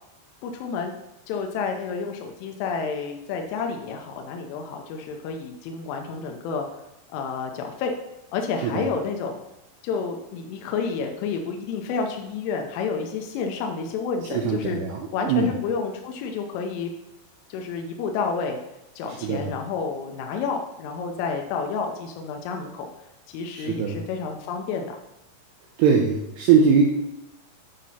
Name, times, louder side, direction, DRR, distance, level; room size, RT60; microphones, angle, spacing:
voice 1, 0.4-0.9 1.3-6.7 7.1-7.9 8.3-9.4 9.8-14.8 15.1-16.9 17.5-18.6 19.0-22.9 23.3-25.0, left 5 dB, 85° left, 3 dB, 3.3 m, -30 dB
voice 2, 14.3-15.5 19.2-19.5 23.5-24.0 25.8-26.8, right 6 dB, 80° right, 0 dB, 2.4 m, -21 dB
9.1 x 5.1 x 4.2 m, 0.89 s
omnidirectional pair, 5.7 m